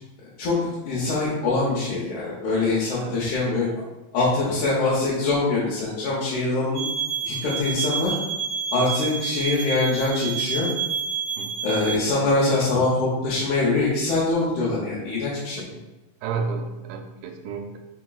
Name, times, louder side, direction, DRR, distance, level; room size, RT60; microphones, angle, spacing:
voice 1, 0.4-3.8 4.1-6.8 7.2-8.1 8.7-10.7 11.6-15.6, left 3 dB, 70° left, -7 dB, 1.9 m, -23 dB
sound 1, 6.7-12.0, right 7 dB, 60° right, 1.7 m, -29 dB
voice 2, 16.2-17.8, right 5 dB, 80° right, 3 dB, 2.2 m, -31 dB
4.7 x 4.2 x 2.3 m, 1.1 s
omnidirectional pair, 4.1 m